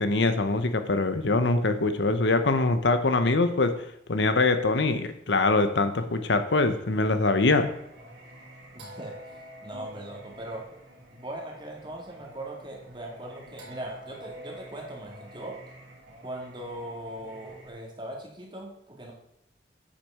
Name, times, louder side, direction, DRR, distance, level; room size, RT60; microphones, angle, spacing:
voice 1, 0.0-3.7 4.1-7.7, left 3 dB, 75° left, 9 dB, 0.8 m, -23 dB
Singing, 7.4-17.7, equal, 80° right, 2.7 m, -48 dB
voice 2, 8.7-9.3 9.6-10.6 11.1-15.6 16.2-19.1, right 1 dB, 25° right, 0 dB, 2.1 m, -39 dB
8.3 x 6.1 x 5.6 m, 0.77 s
head